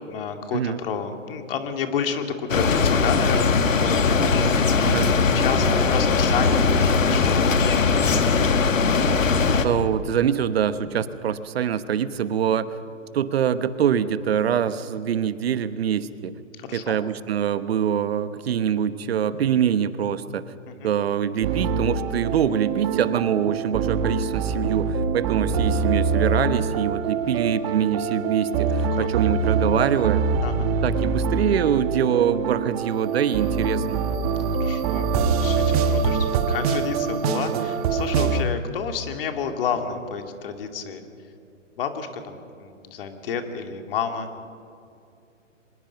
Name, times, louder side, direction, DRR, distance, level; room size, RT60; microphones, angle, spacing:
voice 1, 0.1-7.5 16.5-17.0 20.7-20.9 28.9-29.1 30.4-30.8 34.5-41.0 41.8-44.3, left 6 dB, 45° left, 6 dB, 2.5 m, -30 dB
sound 1, 2.5-9.6, left 4 dB, 75° left, 1.9 m, -20 dB
voice 2, 4.8-5.1 9.6-12.7 13.1-16.3 16.7-20.4 20.8-30.2 30.8-34.0 37.5-37.7, right 8 dB, 50° right, 13 dB, 1.1 m, -24 dB
sound 2, 21.4-38.4, right 5 dB, 30° right, 1.3 m, -24 dB
24.5 x 20.5 x 5.8 m, 2.5 s
hypercardioid pair, 145°, 39 cm